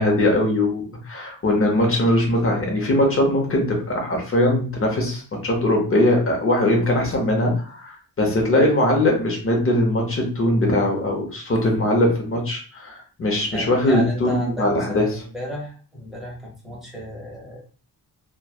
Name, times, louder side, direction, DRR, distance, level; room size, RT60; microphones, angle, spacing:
voice 1, 0.0-15.2, left 1 dB, 35° left, 0 dB, 0.8 m, -21 dB
voice 2, 13.5-17.7, equal, ahead, -4 dB, 0.8 m, -33 dB
3.1 x 2.2 x 2.3 m, 0.39 s
wide cardioid pair, 180°, 38 cm